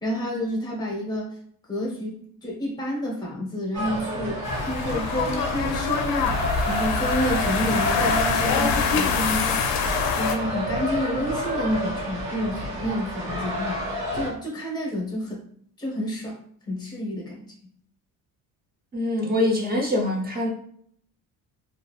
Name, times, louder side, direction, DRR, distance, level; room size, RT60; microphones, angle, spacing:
voice 1, 0.0-1.4 1.7-13.8 14.1-15.4 15.8-16.4 16.7-17.4, equal, 10° left, 0.8 m, -29 dB
sound 1, 3.7-14.3, equal, 75° right, 1.2 m, -29 dB
sound 2, 4.4-10.4, left 6 dB, 60° left, 0.5 m, -25 dB
voice 2, 18.9-20.5, left 1 dB, 25° right, 0.6 m, -24 dB
3.0 x 2.5 x 2.3 m
cardioid pair, 135°, 41 cm